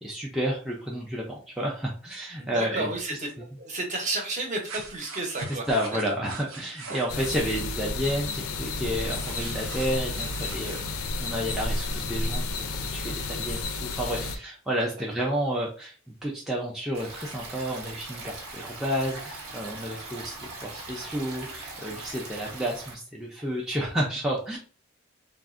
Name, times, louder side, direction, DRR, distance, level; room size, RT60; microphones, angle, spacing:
voice 1, 0.0-2.9 5.7-12.6 12.9-15.9 16.2-24.6, equal, ahead, -4 dB, 0.3 m, -31 dB
voice 2, 2.4-3.3 3.6-5.7 6.9-7.0 15.2-15.3, right 2 dB, 35° right, 1 dB, 0.7 m, -31 dB
sound 1, 4.6-7.2 9.0-10.8, right 4 dB, 75° right, 0.6 m, -41 dB
sound 2, 7.1-14.4, left 3 dB, 80° left, 0.4 m, -31 dB
Stream, 16.9-22.9, right 2 dB, 90° right, 1.0 m, -40 dB
3.4 x 2.0 x 2.4 m, 0.40 s
head